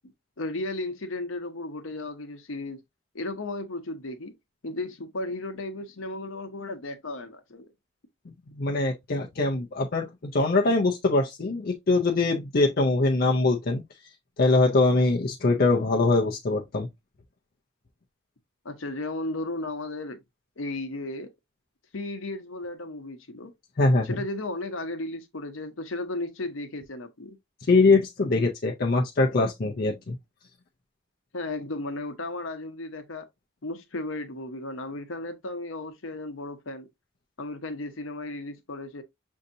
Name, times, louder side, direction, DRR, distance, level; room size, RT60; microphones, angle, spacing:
voice 1, 0.4-2.8 3.1-4.3 4.6-7.7 18.6-20.2 20.6-21.3 21.9-23.5 24.0-27.4 31.3-33.2 33.6-36.9 37.4-39.0, left 2 dB, 70° left, 0.9 m, -34 dB
voice 2, 8.3-13.8 14.4-16.9 23.8-24.2 27.7-30.2, left 3 dB, 45° left, 0.5 m, -23 dB
6.3 x 2.7 x 2.6 m
head